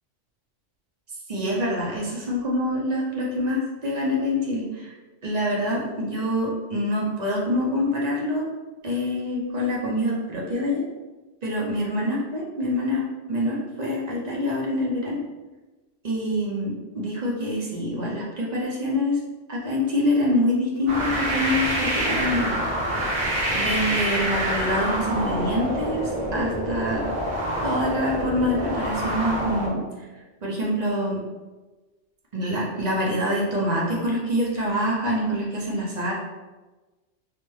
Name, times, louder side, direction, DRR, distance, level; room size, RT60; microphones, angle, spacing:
voice 1, 1.3-4.9 5.2-8.5 8.8-10.8 11.4-15.2 16.0-19.2 19.5-22.5 23.5-27.0 27.6-29.8 30.4-31.2 32.3-36.1, left 1 dB, 45° right, -4 dB, 0.6 m, -25 dB
sound 1, 20.9-29.7, right 1 dB, 75° right, 1.2 m, -26 dB
3.3 x 2.1 x 3.0 m, 1.2 s
omnidirectional pair, 1.2 m